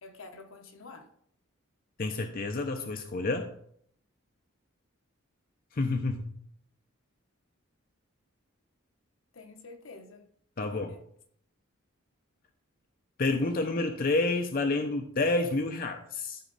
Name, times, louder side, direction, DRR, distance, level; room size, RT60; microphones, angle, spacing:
voice 1, 0.0-1.1 9.3-10.2 10.6-11.0, left 3 dB, 75° left, 1.1 m, -48 dB
voice 2, 2.0-3.5 5.7-6.3 10.6-10.9 13.2-16.4, left 2 dB, 45° left, 0.6 m, -29 dB
12.5 x 4.6 x 4.0 m
head